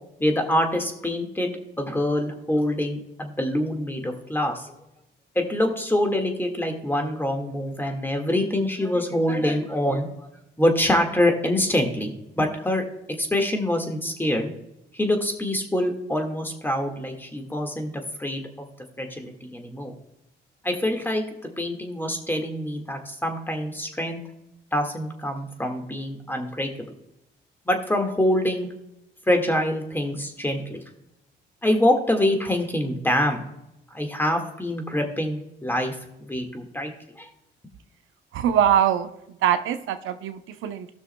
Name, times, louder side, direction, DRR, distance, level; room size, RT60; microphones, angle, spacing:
voice 1, 0.2-4.7 5.3-10.3 10.6-12.8 13.2-14.5 14.9-17.9 18.2-18.7 19.0-19.9 20.6-24.2 24.7-26.9 27.6-28.7 29.3-30.8 31.6-33.4 33.9-35.9 36.2-36.9 37.2-37.3, left 1 dB, 10° left, 4 dB, 1.7 m, -25 dB
voice 2, 38.3-39.1 39.4-40.9, right 9 dB, 85° right, 9 dB, 0.7 m, -22 dB
18.0 x 6.2 x 2.2 m, 0.87 s
cardioid pair, 90°, 20 cm